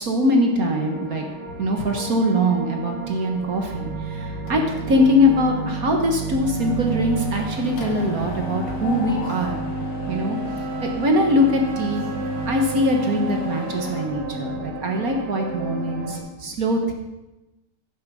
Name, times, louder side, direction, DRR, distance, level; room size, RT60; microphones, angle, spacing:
voice 1, 0.0-9.6 10.1-10.4 10.8-12.0 12.5-16.9, left 1 dB, 50° right, 2 dB, 1.5 m, -22 dB
sound 1, 0.6-16.2, right 3 dB, 85° right, 2.5 m, -30 dB
Mechanisms, 4.5-5.1 5.4-5.6 5.9-14.0, left 5 dB, 75° left, 1.9 m, -38 dB
10.0 x 7.2 x 6.2 m, 1.0 s
omnidirectional pair, 2.3 m